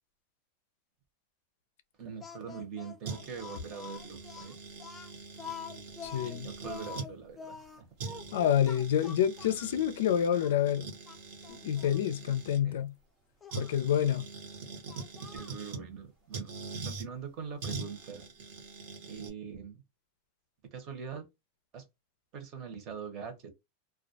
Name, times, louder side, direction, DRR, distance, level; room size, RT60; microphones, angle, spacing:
voice 1, 2.0-4.6 6.2-7.9 12.6-12.8 15.3-16.5 16.8-18.2 19.1-19.8 20.7-21.3 21.7-21.8 22.3-23.5, right 6 dB, 35° right, 0.8 m, -43 dB
Speech, 2.2-9.8 10.4-10.5 11.0-12.0 13.4-13.7 14.9-15.6, left 6 dB, 10° left, 0.4 m, -46 dB
sound 1, 3.1-7.1 7.6-7.7 8.0-12.6 13.5-15.9 16.3-17.1 17.6-19.3, right 4 dB, 65° right, 0.9 m, -43 dB
voice 2, 6.0-6.5 8.3-10.9 11.5-12.9 13.5-14.2, left 9 dB, 90° left, 0.4 m, -28 dB
2.2 x 2.1 x 2.6 m
supercardioid pair, 155°, 0 cm